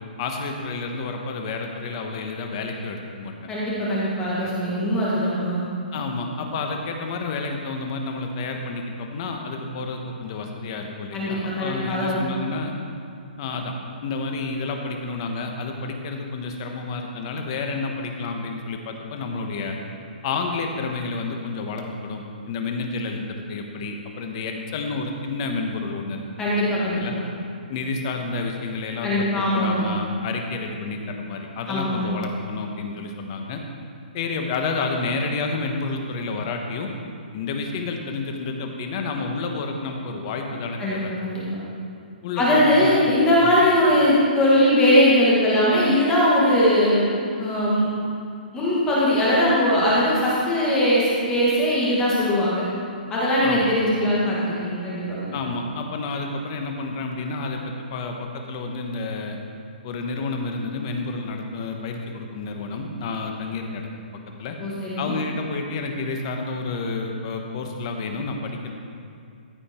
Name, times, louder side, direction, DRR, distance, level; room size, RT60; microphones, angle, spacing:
voice 1, 0.2-3.5 4.2-4.5 5.9-12.7 13.4-13.7 14.0-19.8 20.2-26.2 26.8-27.1 27.7-33.6 34.1-36.9 37.3-41.1 42.2-42.9 43.4-43.5 53.4-53.7 55.3-59.4 59.8-63.9 64.4-64.6 65.0-68.7, left 3 dB, 35° left, 3 dB, 1.2 m, -30 dB
voice 2, 3.5-5.7 11.1-12.3 26.4-27.2 29.0-29.8 31.7-32.1 40.8-41.4 42.4-47.1 47.4-47.9 48.5-52.6 53.1-55.4 64.6-65.1, equal, 10° left, -7 dB, 1.9 m, -20 dB
15.0 x 7.7 x 4.5 m, 2.4 s
hypercardioid pair, 165°, 5 cm